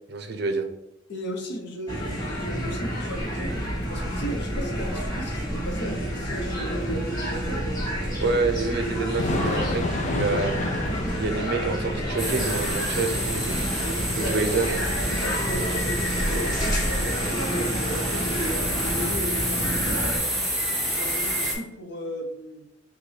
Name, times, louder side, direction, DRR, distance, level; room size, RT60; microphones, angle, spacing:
voice 1, 0.1-0.6 8.2-10.5 11.1-13.6 14.2-14.7, right 3 dB, 55° right, 5 dB, 0.6 m, -27 dB
voice 2, 1.1-3.6 3.9-7.8 14.0-18.3 18.6-20.5 20.9-22.6, equal, 60° left, 3 dB, 0.8 m, -36 dB
sound 1, 1.9-20.2, equal, 20° left, 1.3 m, -29 dB
Thunder / Rain, 3.1-16.6, left 2 dB, 35° left, 0.4 m, -34 dB
sound 2, 12.2-21.5, equal, ahead, 1.3 m, -29 dB
6.2 x 2.3 x 3.2 m, 0.79 s
head